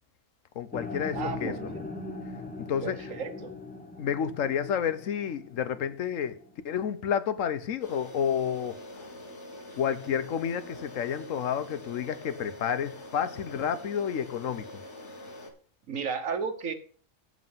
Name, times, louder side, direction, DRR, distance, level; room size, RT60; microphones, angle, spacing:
voice 1, 0.6-1.7 2.6-3.0 4.0-6.4 6.6-8.8 9.7-14.7, left 8 dB, 85° left, 1.2 m, -30 dB
sound 1, 0.7-6.9, left 3 dB, 10° left, 0.9 m, -41 dB
voice 2, 1.1-1.8 2.8-3.5 15.9-16.7, right 5 dB, 85° right, 1.6 m, -33 dB
sound 2, 7.8-15.5, left 1 dB, 60° left, 2.0 m, -45 dB
8.1 x 7.5 x 5.5 m
omnidirectional pair, 1.3 m